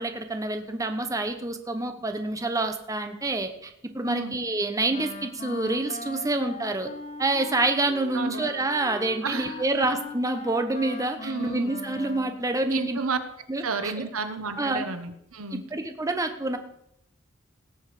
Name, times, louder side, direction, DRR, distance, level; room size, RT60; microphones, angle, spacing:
voice 1, 0.0-6.9 7.2-13.0 13.5-13.9 14.6-14.8 15.5-16.6, right 2 dB, 15° right, 7 dB, 0.9 m, -27 dB
Wind instrument woodwind instrument, 4.9-12.4, left 3 dB, 35° left, 1.2 m, -40 dB
voice 2, 9.2-9.9 11.2-11.7 12.7-13.2 13.6-15.6, right 4 dB, 90° right, 9 dB, 1.2 m, -31 dB
18.0 x 7.1 x 5.0 m, 0.76 s
head